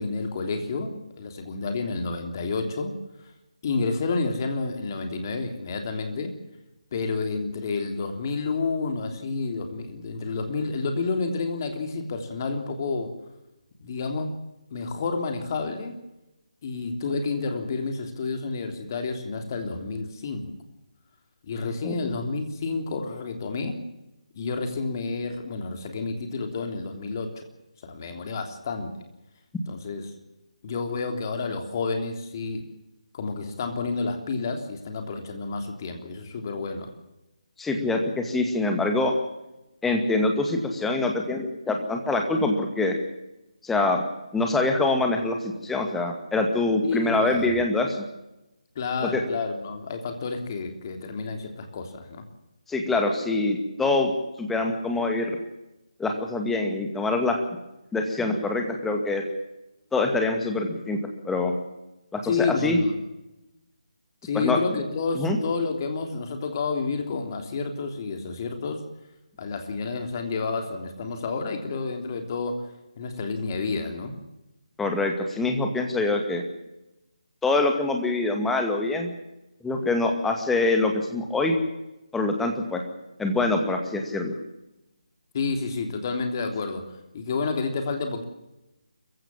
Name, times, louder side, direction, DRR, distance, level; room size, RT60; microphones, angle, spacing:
voice 1, 0.0-2.9 3.6-6.3 6.9-13.1 13.8-14.3 14.7-15.9 16.6-20.5 21.4-23.8 24.3-27.4 27.9-28.9 29.7-30.1 30.6-32.7 33.1-36.9 46.8-47.6 48.7-52.2 62.2-63.0 64.2-68.8 69.4-72.7 73.0-74.1 85.3-86.9 87.1-88.2, left 4 dB, 30° left, 5 dB, 3.3 m, -30 dB
voice 2, 37.6-39.1 39.8-43.0 43.6-44.0 44.3-48.0 49.1-49.2 52.7-54.1 54.4-55.3 56.0-57.4 57.9-59.2 59.9-61.0 61.3-61.6 62.1-62.8 64.3-64.6 65.1-65.4 74.8-76.4 77.4-79.1 79.6-81.6 82.1-82.8 83.2-84.3, left 2 dB, 5° left, 3 dB, 2.2 m, -25 dB
26.0 x 15.5 x 7.3 m, 0.95 s
figure-of-eight pair, 150°, 4 cm